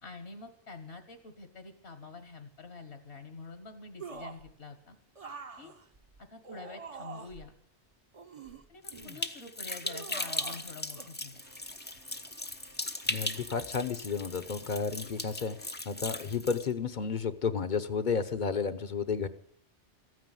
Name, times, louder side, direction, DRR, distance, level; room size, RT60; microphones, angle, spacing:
voice 1, 0.0-5.0 5.6-5.7 6.2-7.5 8.7-11.4, left 4 dB, 70° left, 8 dB, 1.7 m, -47 dB
sound 1, 4.0-4.5 5.2-7.5 8.1-9.2 9.8-10.7 11.0-11.1, right 4 dB, 35° right, 0.9 m, -45 dB
sound 2, 8.8-16.7, left 2 dB, 10° left, 0.5 m, -38 dB
sound 3, 11.4-15.8, right 2 dB, 90° right, 4.5 m, -59 dB
voice 2, 13.1-19.3, left 5 dB, 45° left, 11 dB, 0.9 m, -32 dB
14.5 x 9.4 x 9.1 m, 0.65 s
omnidirectional pair, 1.1 m